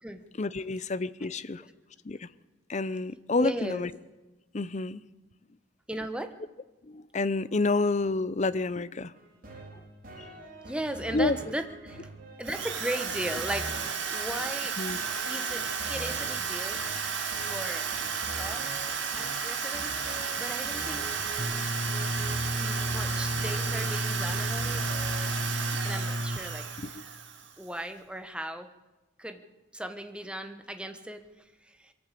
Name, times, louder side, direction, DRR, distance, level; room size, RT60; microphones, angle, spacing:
voice 1, 0.4-1.6 2.0-2.3 2.7-3.9 4.5-5.0 6.8-9.1 9.7-9.8 10.2-10.3 11.1-11.4 14.8-15.0 25.5-25.6 26.8-27.0, left 3 dB, 35° left, 16 dB, 0.6 m, -29 dB
voice 2, 3.4-3.8 5.9-6.3 10.6-12.1 12.4-14.8 15.2-16.8 17.4-17.8 18.4-21.1 22.6-24.9 25.8-26.7 27.6-28.7 29.2-29.4 29.7-31.2 31.7-31.9, right 1 dB, 5° right, 8 dB, 1.2 m, -37 dB
sound 1, 9.1-25.3, right 1 dB, 50° right, 4.4 m, -44 dB
Drill, 12.4-27.6, right 6 dB, 65° right, 2.3 m, -33 dB
sound 2, 21.4-26.4, equal, 25° right, 1.5 m, -32 dB
22.0 x 14.0 x 8.5 m, 1.1 s
head